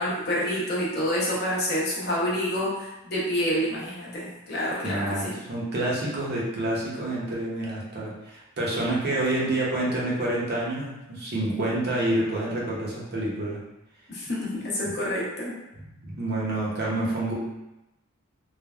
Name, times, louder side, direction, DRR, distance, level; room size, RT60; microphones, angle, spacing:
voice 1, 0.0-5.3 14.1-15.5, equal, 45° left, -6 dB, 0.8 m, -28 dB
voice 2, 4.8-13.6 16.0-17.3, right 1 dB, 45° right, -5 dB, 0.7 m, -28 dB
3.2 x 2.1 x 2.3 m, 0.94 s
head